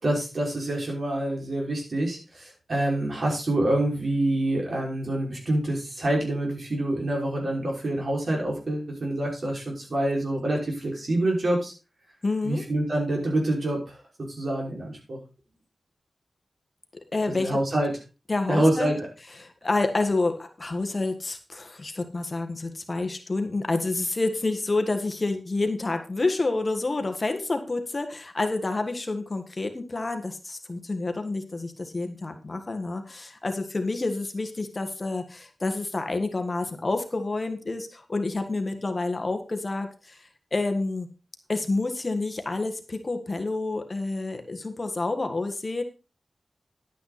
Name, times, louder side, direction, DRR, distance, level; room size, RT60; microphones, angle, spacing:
voice 1, 0.0-11.7 12.4-15.2 17.3-17.9 18.5-19.1, right 1 dB, 55° right, -1 dB, 5.6 m, -26 dB
voice 2, 12.2-12.6 16.9-17.6 18.3-18.9 19.4-41.1 41.5-45.8, left 3 dB, 35° left, 6 dB, 1.5 m, -28 dB
11.0 x 9.3 x 4.2 m, 0.31 s
wide cardioid pair, 115°, 0 cm